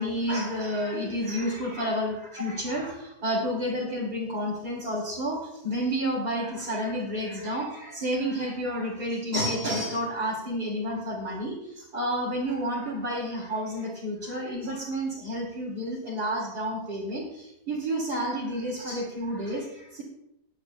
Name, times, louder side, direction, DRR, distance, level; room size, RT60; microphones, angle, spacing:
voice 1, 0.0-20.0, equal, 30° right, -6 dB, 2.4 m, -30 dB
20.0 x 9.9 x 2.2 m, 0.84 s
omnidirectional pair, 4.3 m